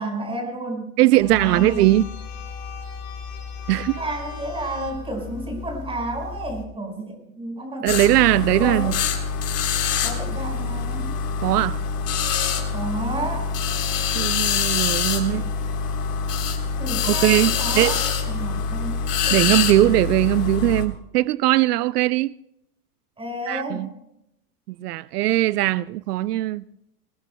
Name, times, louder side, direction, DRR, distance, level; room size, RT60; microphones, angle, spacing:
voice 1, 0.0-0.9 1.3-1.9 4.0-8.0 8.6-8.9 10.0-11.1 12.7-13.5 16.8-17.9 18.3-19.4 23.2-23.9, right 2 dB, 10° right, 5.0 m, -31 dB
voice 2, 1.0-2.0 3.7-4.0 7.8-9.0 11.4-11.8 14.1-15.4 17.0-18.0 19.3-22.3 23.5-23.9 24.8-26.6, right 15 dB, 85° right, 0.6 m, -20 dB
sound 1, 1.2-6.6, left 6 dB, 55° left, 3.4 m, -36 dB
sound 2, 7.9-20.8, left 6 dB, 80° left, 3.4 m, -25 dB
23.0 x 20.5 x 2.2 m
supercardioid pair, 130°, 46 cm